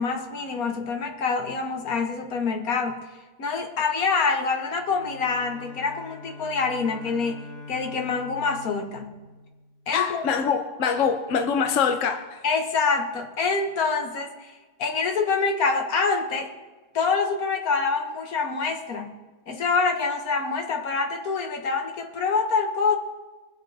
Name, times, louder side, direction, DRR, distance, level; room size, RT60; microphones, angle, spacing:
voice 1, 0.0-3.0 3.4-7.4 7.7-9.2 9.9-10.3 12.4-14.5 14.8-16.5 16.9-19.1 19.5-23.0, left 4 dB, 80° left, 4 dB, 1.7 m, -26 dB
Bowed string instrument, 4.8-10.0, left 3 dB, 25° left, 2.3 m, -44 dB
voice 2, 9.9-12.4, left 6 dB, 65° left, 5 dB, 1.1 m, -24 dB
23.0 x 7.8 x 3.4 m, 1.2 s
omnidirectional pair, 1.5 m